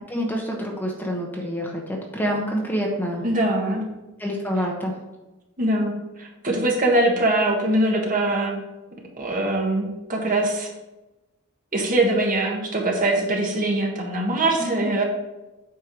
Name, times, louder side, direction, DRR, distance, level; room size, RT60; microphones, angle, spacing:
voice 1, 0.1-3.2 4.2-4.9 14.6-14.9, equal, 10° left, -1 dB, 1.0 m, -27 dB
voice 2, 3.2-3.9 5.6-5.9 6.2-8.6 9.2-10.7 11.7-15.0, right 1 dB, 40° right, 0 dB, 1.5 m, -22 dB
8.5 x 4.6 x 4.6 m, 1.0 s
head